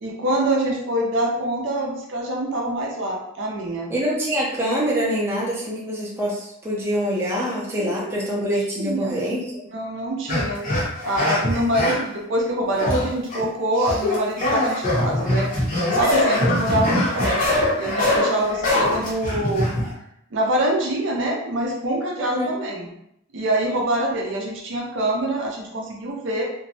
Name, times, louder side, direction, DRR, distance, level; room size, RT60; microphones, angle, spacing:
voice 1, 0.0-3.9 7.4-9.2 9.7-10.6 11.0-15.5 15.9-19.7 20.3-22.9 23.3-26.4, right 1 dB, 65° right, -1 dB, 0.5 m, -25 dB
voice 2, 3.9-9.6 22.3-22.5, equal, 10° right, -6 dB, 0.5 m, -25 dB
sound 1, 10.3-12.1 12.8-13.4 13.8-19.9, left 1 dB, 40° left, 0.7 m, -22 dB
2.6 x 2.0 x 2.6 m, 0.77 s
head